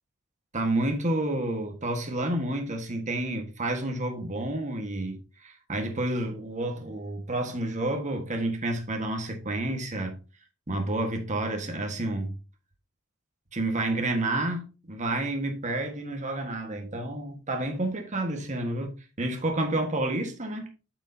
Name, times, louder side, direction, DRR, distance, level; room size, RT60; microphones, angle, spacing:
voice 1, 0.5-10.2 10.7-12.3 13.5-20.7, right 1 dB, 35° right, 1.4 m, -30 dB
8.1 x 6.4 x 2.7 m
head